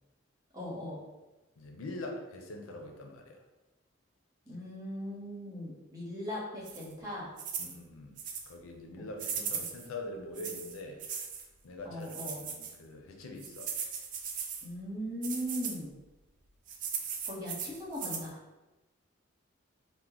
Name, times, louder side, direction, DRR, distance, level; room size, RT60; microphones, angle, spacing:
voice 1, 0.5-1.0 4.4-7.3 9.5-9.7 11.8-12.4 14.6-15.9 17.3-18.4, equal, 15° right, -6 dB, 0.9 m, -39 dB
voice 2, 1.6-3.4 7.6-8.1 8.5-11.0 11.6-13.7, left 2 dB, 90° left, 2 dB, 0.5 m, -43 dB
sound 1, 6.6-6.9 7.4-7.7 8.2-8.5 9.2-9.9 10.3-11.4 12.0-12.8 13.4-14.7 15.2-15.8 16.7-18.3, right 6 dB, 40° right, 0.3 m, -38 dB
3.0 x 2.1 x 3.7 m, 1.1 s
head